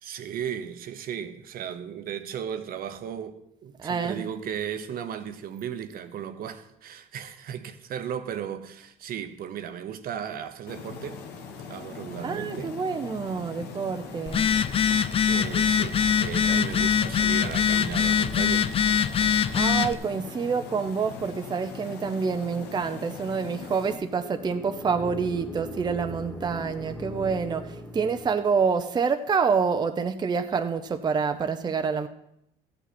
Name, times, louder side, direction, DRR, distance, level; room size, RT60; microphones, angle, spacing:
voice 1, 0.0-11.2 11.7-12.7 15.3-18.7, right 8 dB, 60° right, 0.9 m, -35 dB
voice 2, 3.8-4.3 12.2-14.5 19.5-32.1, right 5 dB, 25° right, 0.6 m, -27 dB
sound 1, 10.7-23.9, left 5 dB, 80° left, 1.4 m, -41 dB
Telephone, 14.3-19.9, left 7 dB, 35° left, 0.5 m, -23 dB
sound 2, 23.7-28.6, left 1 dB, 15° left, 2.1 m, -40 dB
13.5 x 8.4 x 4.3 m
cardioid pair, 110°, 17 cm